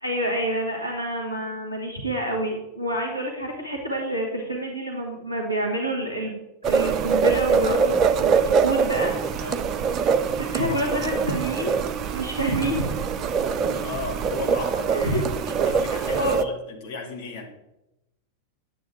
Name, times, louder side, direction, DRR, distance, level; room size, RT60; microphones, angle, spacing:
voice 1, 0.0-6.4 6.6-9.3 10.4-11.7 12.1-12.9 14.9-15.2 16.2-16.4, right 1 dB, 90° left, -1 dB, 1.8 m, -27 dB
sound 1, 6.6-16.4, right 6 dB, 30° right, 0.6 m, -24 dB
voice 2, 13.5-17.4, left 3 dB, 45° left, 0 dB, 2.4 m, -35 dB
10.5 x 8.6 x 3.7 m, 0.90 s
figure-of-eight pair, 90°, 0 cm